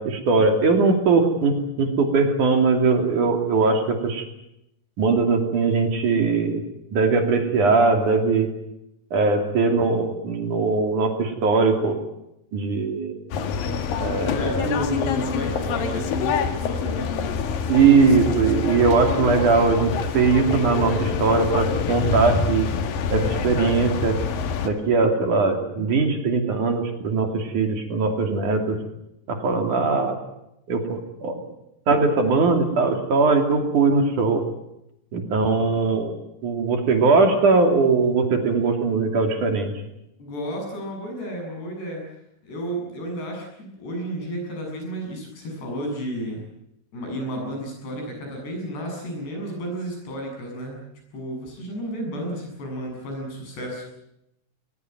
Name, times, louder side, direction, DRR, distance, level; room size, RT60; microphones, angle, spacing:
voice 1, 0.0-4.3 5.0-6.6 6.9-8.5 9.1-12.0 12.5-13.2 14.0-14.3 14.6-14.7 17.7-22.7 23.1-24.2 24.6-28.8 29.3-30.2 30.7-31.4 31.9-34.4 35.1-36.1 36.4-39.7, right 4 dB, 50° right, 5 dB, 3.9 m, -20 dB
sound 1, 13.3-24.7, left 6 dB, 65° left, 3.2 m, -26 dB
voice 2, 14.3-17.1 35.6-35.7 40.2-42.1 42.4-46.4 46.9-50.8 51.1-53.9, equal, 80° left, 2 dB, 9.7 m, -32 dB
22.0 x 20.5 x 9.1 m, 0.84 s
omnidirectional pair, 4.8 m